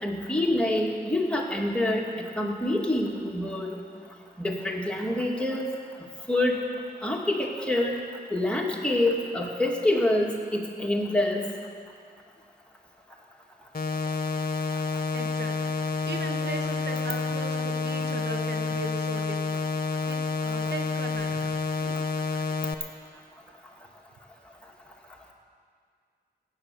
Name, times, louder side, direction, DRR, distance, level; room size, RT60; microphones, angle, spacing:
voice 1, 0.0-3.8 4.4-5.7 6.3-6.6 7.0-8.0 8.3-11.5, left 1 dB, 5° left, -1 dB, 1.9 m, -26 dB
sound 1, 13.7-22.7, left 4 dB, 55° left, 0.9 m, -29 dB
voice 2, 15.1-15.8 16.0-19.7 20.1-21.5 21.8-21.9 22.4-22.9, right 3 dB, 70° right, 4 dB, 1.2 m, -39 dB
17.0 x 7.8 x 6.9 m, 2.1 s
wide cardioid pair, 75°, 18 cm